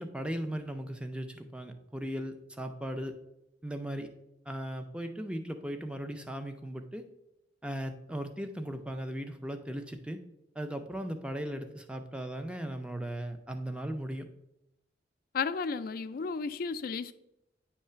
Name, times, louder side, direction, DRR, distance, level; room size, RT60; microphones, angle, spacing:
voice 1, 0.0-3.1 3.6-4.1 4.5-7.0 7.6-10.2 10.6-14.3, right 1 dB, 5° right, 0.5 m, -37 dB
voice 2, 15.3-17.1, left 5 dB, 50° left, 0.4 m, -33 dB
8.5 x 3.2 x 5.6 m
head